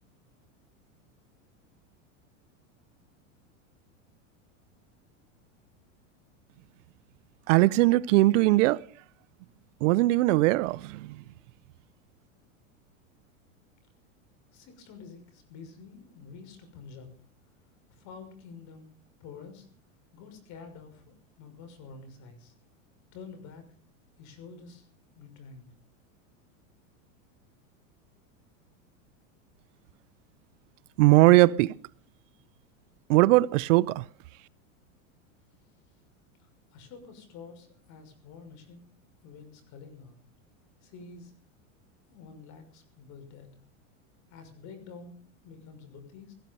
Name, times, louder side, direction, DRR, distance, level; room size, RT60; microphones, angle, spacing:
voice 1, 7.5-8.8 9.8-11.2 31.0-31.7 33.1-34.0, right 19 dB, 65° right, 0.7 m, -20 dB
voice 2, 14.5-17.1 17.9-18.9 19.2-19.7 20.1-22.5 23.1-23.7 24.2-24.9 25.1-25.7 36.4-38.8 39.2-40.2 40.8-41.3 42.1-43.5 44.3-46.3, left 5 dB, 45° left, 6.2 m, -48 dB
17.0 x 15.5 x 5.5 m
supercardioid pair, 130°, 39 cm